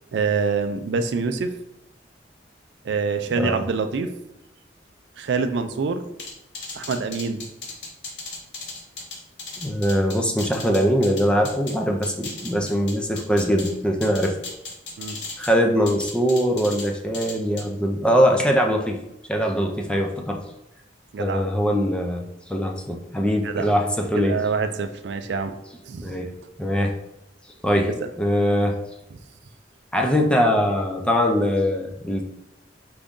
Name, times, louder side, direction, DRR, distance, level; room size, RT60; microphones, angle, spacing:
voice 1, 0.1-1.5 2.8-4.1 5.2-6.0 6.7-7.5 15.0-15.2 21.1-21.4 23.4-23.7 24.1-25.6 25.8-26.2, right 5 dB, 65° right, 8 dB, 0.4 m, -25 dB
sound 1, 6.2-11.8 12.0-13.7 14.0-15.5 15.9-16.9 17.1-17.6, left 3 dB, 70° left, 0.9 m, -36 dB
voice 2, 9.6-14.4 15.4-19.0 19.3-20.4 21.2-24.4 26.0-26.3 26.6-27.0 27.6-27.9 28.2-28.8 29.9-32.2, equal, 5° left, 2 dB, 0.4 m, -22 dB
4.7 x 2.6 x 3.6 m, 0.87 s
head